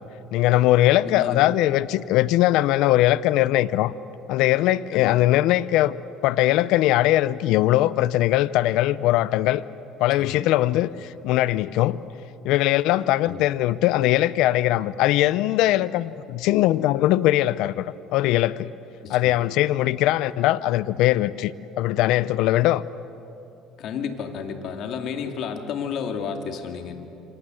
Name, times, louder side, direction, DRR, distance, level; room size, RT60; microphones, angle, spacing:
voice 1, 0.3-3.9 4.3-6.0 6.2-9.6 10.0-12.0 12.4-18.7 19.1-22.8, left 15 dB, 75° left, 17 dB, 0.6 m, -21 dB
voice 2, 1.0-1.6 4.9-5.2 10.2-10.4 13.3-13.4 19.0-19.4 23.8-26.9, left 6 dB, 60° left, 4 dB, 2.7 m, -32 dB
27.5 x 25.5 x 7.9 m, 2.9 s
cardioid pair, 125°, 0 cm